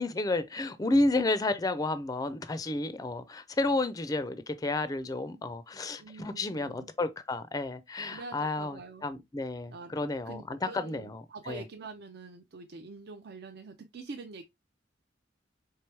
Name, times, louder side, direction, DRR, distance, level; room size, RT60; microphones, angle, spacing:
voice 1, 0.0-11.6, left 2 dB, 20° left, 0.4 m, -31 dB
voice 2, 5.9-6.9 8.1-9.1 9.7-14.4, right 3 dB, 55° right, 0.5 m, -45 dB
4.6 x 3.3 x 3.2 m
head